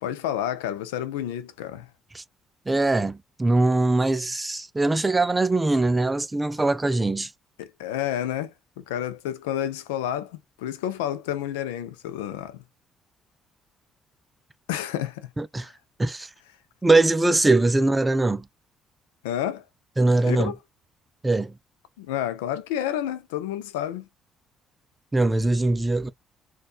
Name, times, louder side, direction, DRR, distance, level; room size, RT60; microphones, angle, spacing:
voice 1, 0.0-1.9 7.6-12.6 14.7-15.3 19.2-19.6 20.2-20.6 22.0-24.1, left 11 dB, 85° left, 0.4 m, -30 dB
voice 2, 2.7-7.3 15.4-15.7 16.0-16.3 16.8-18.4 20.0-20.5 21.2-21.5 25.1-26.1, right 2 dB, 20° right, 0.4 m, -22 dB
4.2 x 2.3 x 2.4 m
hypercardioid pair, 55°, 0 cm